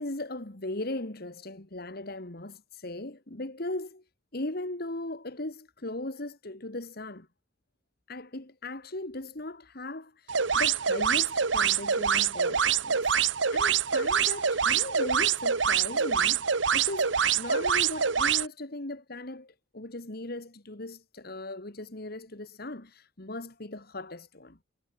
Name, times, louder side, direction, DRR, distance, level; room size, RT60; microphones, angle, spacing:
voice 1, 0.0-4.0 4.3-7.3 8.1-24.6, left 2 dB, 50° left, 1.9 m, -38 dB
sound 1, 10.3-18.5, right 7 dB, 70° right, 1.1 m, -25 dB
head